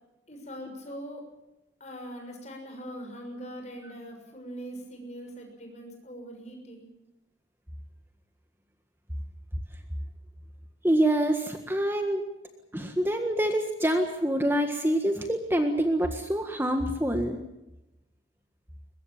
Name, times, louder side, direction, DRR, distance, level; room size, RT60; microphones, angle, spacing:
voice 1, 0.3-1.2 1.8-6.9, equal, 40° left, 3 dB, 6.7 m, -41 dB
voice 2, 10.8-12.2 12.7-17.4, right 1 dB, 10° right, 5 dB, 1.7 m, -26 dB
23.0 x 21.5 x 7.4 m, 0.95 s
head